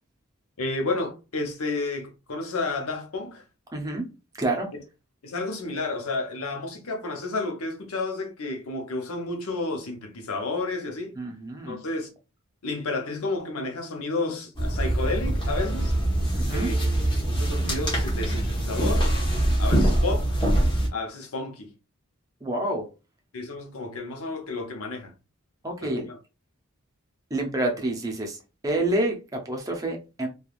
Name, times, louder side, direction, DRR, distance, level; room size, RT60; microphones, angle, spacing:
voice 1, 0.6-3.4 5.2-11.2 11.7-12.1 12.6-15.9 16.5-17.0 17.3-19.1 19.6-20.4 20.9-21.7 23.3-25.1 25.8-26.2, left 3 dB, 85° left, 0.7 m, -31 dB
voice 2, 3.7-4.1 4.4-4.7 11.1-11.8 16.3-16.8 22.4-22.9 25.6-26.1 27.3-30.3, right 1 dB, 15° right, 0.6 m, -28 dB
sound 1, 14.5-20.9, right 1 dB, 20° left, 1.1 m, -24 dB
3.3 x 2.3 x 2.4 m
head